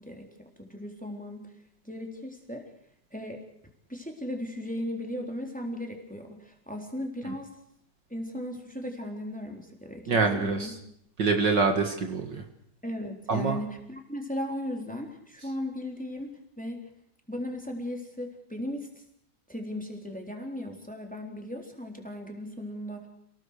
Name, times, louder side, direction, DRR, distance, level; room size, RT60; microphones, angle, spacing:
voice 1, 0.0-1.5 1.8-2.6 3.1-3.4 3.9-7.5 8.1-10.7 12.8-16.9 17.3-19.0 19.5-23.1, left 1 dB, 5° left, 2 dB, 3.8 m, -37 dB
voice 2, 10.1-10.8 11.2-12.4 13.3-13.6, right 4 dB, 55° right, 5 dB, 2.4 m, -25 dB
29.5 x 18.0 x 6.6 m, 0.71 s
omnidirectional pair, 2.4 m